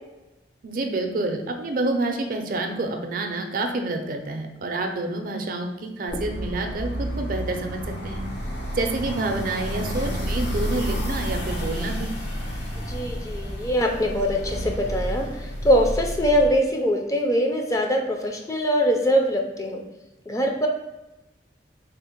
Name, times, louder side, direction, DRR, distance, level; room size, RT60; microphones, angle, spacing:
voice 1, 0.6-8.2 8.7-12.1, right 2 dB, 50° right, 4 dB, 0.4 m, -28 dB
sound 1, 6.1-16.5, equal, 80° left, 0.9 m, -30 dB
voice 2, 12.9-19.8 20.3-20.7, equal, 20° left, 2 dB, 0.4 m, -23 dB
3.5 x 2.1 x 4.3 m, 1.0 s
head